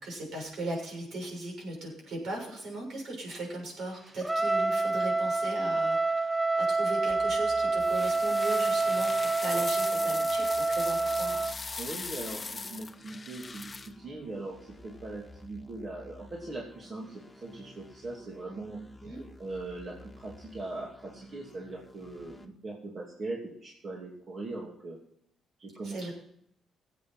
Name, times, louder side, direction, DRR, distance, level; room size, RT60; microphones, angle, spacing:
voice 1, 0.0-11.5 19.0-19.2 25.8-26.1, right 2 dB, 65° right, 0 dB, 6.5 m, -38 dB
Trumpet, 4.2-11.6, right 3 dB, 10° right, 0.5 m, -27 dB
sound 1, 7.1-22.5, left 2 dB, 10° left, 1.9 m, -53 dB
sound 2, 7.8-13.9, left 4 dB, 25° left, 0.9 m, -40 dB
voice 2, 11.8-14.6 14.8-17.1 17.4-18.8 19.4-25.0 25.6-26.0, right 2 dB, 45° right, -2 dB, 2.8 m, -40 dB
16.5 x 8.5 x 5.7 m, 0.72 s
cardioid pair, 90°, 0 cm